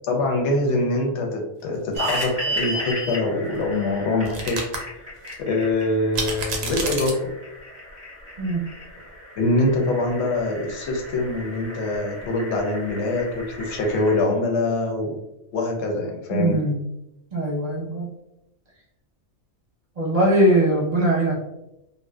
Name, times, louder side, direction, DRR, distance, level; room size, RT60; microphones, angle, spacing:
voice 1, 0.0-4.6 5.4-7.2 9.4-15.2 15.5-16.6, left 2 dB, 65° left, 1 dB, 0.8 m, -24 dB
sound 1, 1.9-14.2, right 1 dB, 15° right, 0.9 m, -35 dB
sound 2, 1.9-2.3 4.2-4.8 5.3-5.4 6.1-7.1, right 3 dB, 85° right, 1.0 m, -29 dB
voice 2, 16.3-16.8 17.3-18.1 20.0-21.4, right 1 dB, 35° right, -5 dB, 0.8 m, -21 dB
2.6 x 2.1 x 2.2 m, 0.87 s
omnidirectional pair, 1.3 m